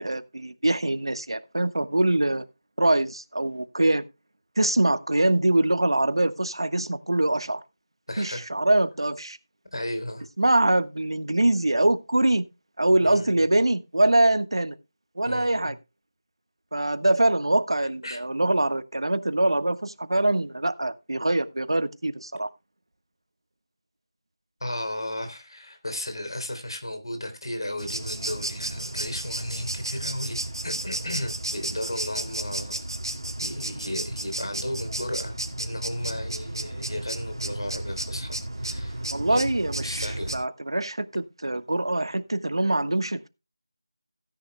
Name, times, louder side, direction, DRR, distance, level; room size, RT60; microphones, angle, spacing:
voice 1, 0.0-2.4 2.8-4.0 4.6-7.6 8.2-9.4 10.4-12.5 12.8-14.8 15.2-15.7 16.7-22.5 39.1-43.3, right 1 dB, 80° right, 1.4 m, -24 dB
voice 2, 8.1-8.4 9.7-10.3 13.0-13.4 15.3-15.7 18.0-18.2 24.6-30.4 30.6-32.9 33.4-39.0 39.3-39.5 39.8-40.3, left 1 dB, 70° left, 3.5 m, -34 dB
sound 1, 27.8-40.4, right 1 dB, 60° right, 2.6 m, -33 dB
16.5 x 10.0 x 2.2 m
figure-of-eight pair, 180°, 3 cm